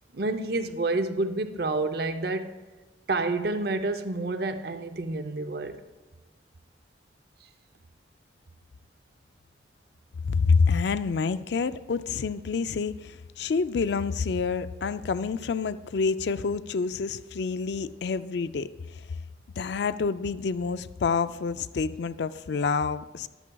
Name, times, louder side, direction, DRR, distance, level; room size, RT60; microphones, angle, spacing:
voice 1, 0.1-2.6 3.1-5.8, right 2 dB, 55° right, 9 dB, 0.6 m, -29 dB
voice 2, 10.3-19.2 19.6-23.3, left 5 dB, 65° left, 14 dB, 0.4 m, -28 dB
13.0 x 12.0 x 2.3 m, 1.2 s
head